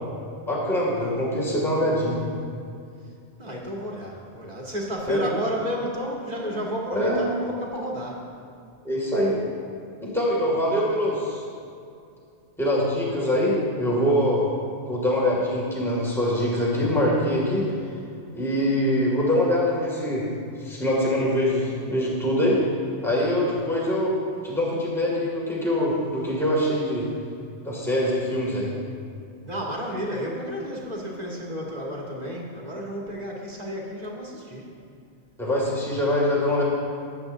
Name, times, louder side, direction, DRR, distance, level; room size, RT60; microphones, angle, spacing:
voice 1, 0.5-2.2 5.1-5.2 6.9-7.2 8.8-9.4 10.0-11.4 12.6-14.4 14.9-17.8 18.3-20.3 20.6-22.6 23.0-24.2 24.4-27.1 27.6-28.7 35.4-36.6, left 1 dB, ahead, -5 dB, 2.1 m, -23 dB
voice 2, 3.4-8.2 29.4-34.7, equal, 35° right, -3 dB, 1.8 m, -31 dB
19.0 x 8.2 x 2.6 m, 2.4 s
omnidirectional pair, 1.2 m